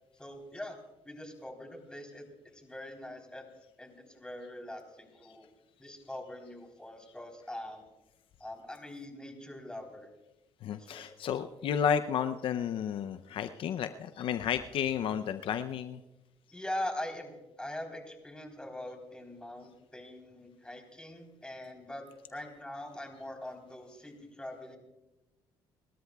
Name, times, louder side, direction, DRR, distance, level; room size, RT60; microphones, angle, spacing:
voice 1, 0.2-2.3 2.5-3.5 3.8-5.5 5.8-7.8 8.4-10.1 10.7-11.0 16.5-24.8, left 1 dB, 10° left, 3 dB, 3.7 m, -42 dB
voice 2, 10.6-16.0, left 8 dB, 65° left, 10 dB, 0.6 m, -32 dB
30.0 x 13.0 x 2.3 m, 1.0 s
cardioid pair, 85°, 10 cm